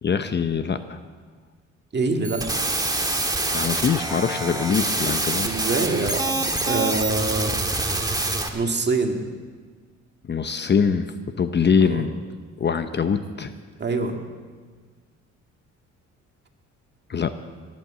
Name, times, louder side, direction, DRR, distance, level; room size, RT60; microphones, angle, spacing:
voice 1, 0.0-1.0 3.5-5.5 10.2-12.1 12.6-13.5 17.1-17.4, left 6 dB, 35° left, 10 dB, 0.8 m, -23 dB
voice 2, 1.9-2.6 5.4-6.4 6.6-7.5 8.5-9.2 11.8-12.1 13.8-14.2, right 3 dB, 35° right, 4 dB, 2.0 m, -25 dB
sound 1, 2.2-8.5, right 2 dB, 10° right, 1.6 m, -25 dB
20.0 x 8.6 x 7.4 m, 1.5 s
cardioid pair, 90°, 30 cm